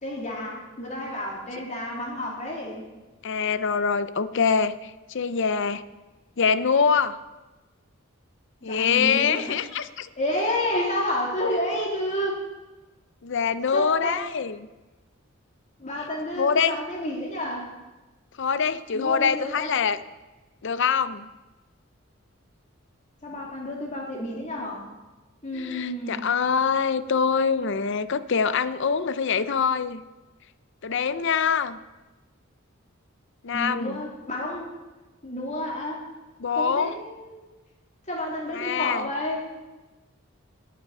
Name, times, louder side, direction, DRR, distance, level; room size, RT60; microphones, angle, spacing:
voice 1, 0.0-2.8 8.6-9.6 10.2-12.4 13.7-14.2 15.8-17.7 18.9-19.8 23.2-24.9 25.4-26.2 33.5-34.7 35.2-36.0 36.6-37.4 38.1-39.5, left 1 dB, 35° left, -2 dB, 3.1 m, -30 dB
voice 2, 3.2-5.8 6.4-7.2 8.6-10.1 13.2-14.6 16.3-16.8 18.4-20.0 20.6-21.3 25.5-30.0 30.8-31.8 33.4-34.0 36.4-36.9 38.5-39.1, left 6 dB, 60° left, 14 dB, 0.6 m, -24 dB
19.0 x 7.7 x 5.5 m, 1.2 s
head